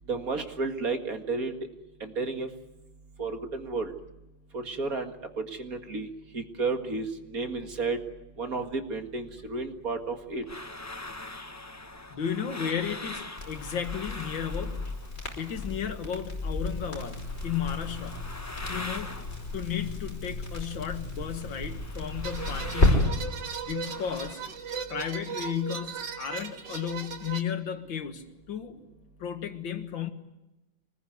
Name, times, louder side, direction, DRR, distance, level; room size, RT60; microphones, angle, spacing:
voice 1, 0.1-1.6 2.0-2.5 3.2-3.9 4.5-6.1 6.3-8.0 8.4-10.4, right 3 dB, 45° right, 2.3 m, -32 dB
Air blowing through trumpet, 9.3-16.0 16.2-20.8 21.1-24.6, left 2 dB, 15° left, 0.6 m, -43 dB
voice 2, 12.1-14.9 15.4-18.3 18.7-19.1 19.5-23.2 23.7-24.4 24.9-28.8 29.2-30.1, left 8 dB, 75° left, 2.3 m, -34 dB
Crackle, 13.3-22.9, left 2 dB, 30° left, 5.5 m, -32 dB
sound 1, 22.2-27.4, right 6 dB, 65° right, 2.3 m, -37 dB
25.5 x 20.5 x 9.5 m
omnidirectional pair, 2.1 m